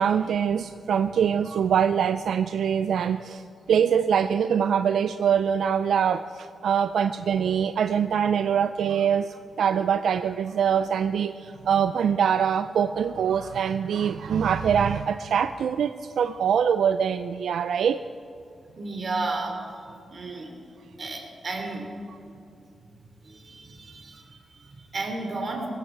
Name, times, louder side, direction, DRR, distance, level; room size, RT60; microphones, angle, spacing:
voice 1, 0.0-18.0, right 7 dB, 85° right, 11 dB, 0.4 m, -24 dB
voice 2, 18.8-19.8 20.1-20.5 21.0-21.9 22.9-25.7, right 3 dB, 50° right, 2 dB, 3.2 m, -33 dB
19.0 x 15.5 x 4.6 m, 2.7 s
cardioid pair, 90°, 0 cm